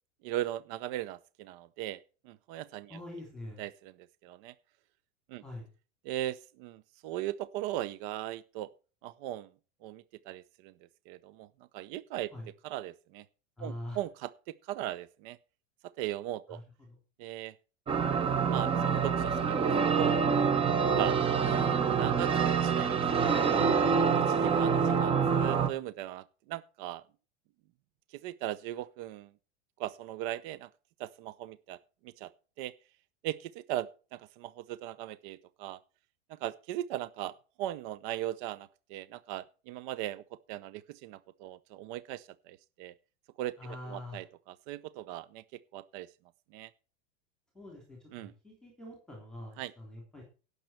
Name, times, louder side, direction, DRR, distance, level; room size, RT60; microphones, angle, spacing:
voice 1, 0.2-2.0 2.2-3.0 3.6-3.9 4.2-4.5 5.3-5.4 6.0-8.7 9.0-9.5 9.8-10.7 11.1-11.5 11.7-12.3 12.6-13.2 13.6-15.4 16.0-16.6 17.2-17.6 18.5-19.7 19.9-20.2 20.9-21.2 21.9-23.7 24.3-27.0 28.1-29.3 29.8-30.7 31.0-32.3 32.6-32.7 33.2-35.8 36.3-40.2 40.5-42.9 43.4-43.5 43.9-46.1 46.5-46.7 48.1-48.3 49.6-49.7, right 13 dB, 45° right, 16 dB, 0.7 m, -38 dB
voice 2, 2.9-3.6 5.4-5.7 12.3-12.5 13.6-14.0 16.5-16.6 16.9-17.0 24.7-25.4 43.6-44.2 47.5-50.2, left 1 dB, ahead, 0 dB, 3.3 m, -44 dB
sound 1, 17.9-25.7, right 6 dB, 15° right, 0.9 m, -26 dB
16.5 x 6.8 x 4.5 m, 0.35 s
supercardioid pair, 150°, 35 cm